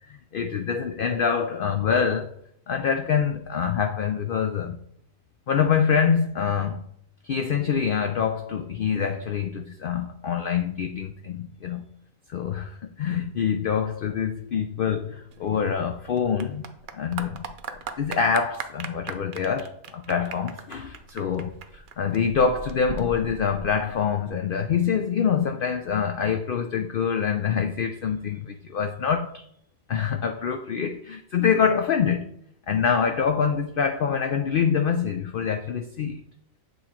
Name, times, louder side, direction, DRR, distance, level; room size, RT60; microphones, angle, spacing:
voice 1, 0.1-2.3 2.7-4.8 5.5-6.8 7.2-11.9 12.3-16.7 16.9-17.4 17.7-29.4 29.9-32.3 32.7-36.2, left 7 dB, 75° left, 0.5 m, -25 dB
Clapping / Applause, 15.3-24.3, right 6 dB, 65° right, 0.5 m, -39 dB
7.9 x 3.0 x 4.3 m
omnidirectional pair, 1.4 m